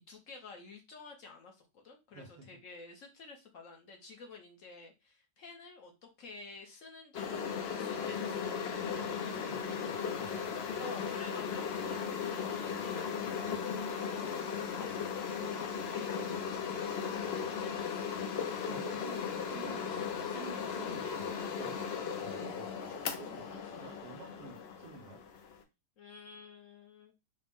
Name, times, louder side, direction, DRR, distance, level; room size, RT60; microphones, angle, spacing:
voice 1, 0.1-8.5 10.8-15.4 15.7-18.0 26.0-27.1, left 4 dB, 60° left, 1.0 m, -52 dB
voice 2, 2.1-2.5 9.0-10.5 18.7-25.3, right 3 dB, 75° right, 1.3 m, -50 dB
sound 1, 7.1-25.6, left 6 dB, 75° left, 0.5 m, -37 dB
4.1 x 2.0 x 3.5 m
omnidirectional pair, 1.8 m